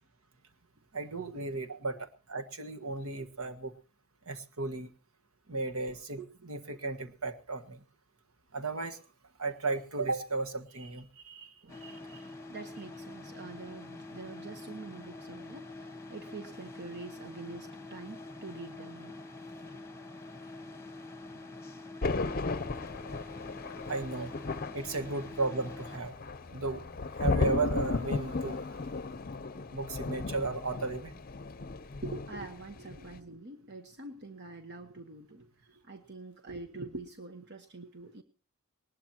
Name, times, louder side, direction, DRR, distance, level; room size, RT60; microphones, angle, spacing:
voice 1, 0.9-3.7 4.2-4.9 5.5-7.8 8.5-9.0 9.4-11.5 11.8-12.2 23.8-24.3 24.7-26.2 26.5-26.8 27.1-28.8 29.7-31.1, right 3 dB, 75° right, 8 dB, 1.6 m, -35 dB
voice 2, 11.6-19.2 19.6-19.8 20.4-20.9 32.0-38.2, right 3 dB, 50° right, 7 dB, 1.2 m, -46 dB
sound 1, 11.7-26.0, left 2 dB, 15° left, 1.6 m, -46 dB
Thunder, 22.0-32.6 32.9-33.2, left 3 dB, 45° left, 0.7 m, -35 dB
sound 2, 22.4-28.1, left 2 dB, 25° right, 4.2 m, -56 dB
20.0 x 19.5 x 2.9 m, 0.34 s
head